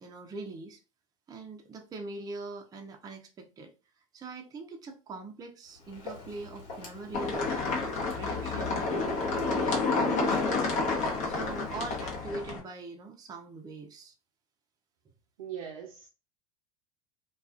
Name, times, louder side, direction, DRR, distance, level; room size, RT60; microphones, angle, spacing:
voice 1, 0.0-0.8 1.3-3.7 4.1-9.1 9.5-10.5 11.2-14.1, right 3 dB, 20° right, 0.4 m, -42 dB
Walk footsteps, 5.6-12.2, left 3 dB, 60° left, 1.2 m, -47 dB
sound 1, 7.1-12.6, left 3 dB, 45° left, 0.8 m, -29 dB
voice 2, 15.4-16.1, right 9 dB, 70° right, 0.5 m, -40 dB
2.3 x 2.2 x 2.3 m
hypercardioid pair, 100°, 18 cm